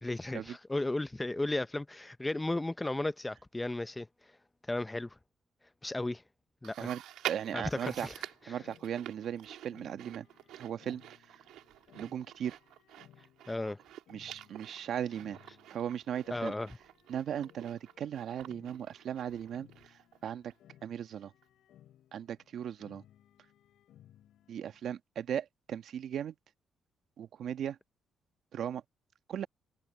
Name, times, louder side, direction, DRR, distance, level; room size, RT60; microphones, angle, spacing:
voice 1, 0.0-4.1 4.7-5.2 5.8-6.2 6.6-6.9 7.5-8.1 13.5-13.8 16.3-16.7, left 2 dB, 15° left, 0.8 m, -34 dB
Chewing mastication, 6.6-20.2 20.5-20.6 21.4-21.5, right 13 dB, 90° right, 2.3 m, -47 dB
voice 2, 6.8-8.1 8.5-10.3 10.6-11.0 11.3-11.4 11.9-12.6 14.1-15.4 15.7-16.5 17.1-20.5 20.8-21.3 22.1-23.0 24.5-26.3 27.2-27.8 28.5-28.8 29.3-29.5, right 9 dB, 65° right, 1.3 m, -37 dB
sound 1, 7.5-24.9, left 11 dB, 75° left, 6.8 m, -62 dB
cardioid pair, 90°, 0 cm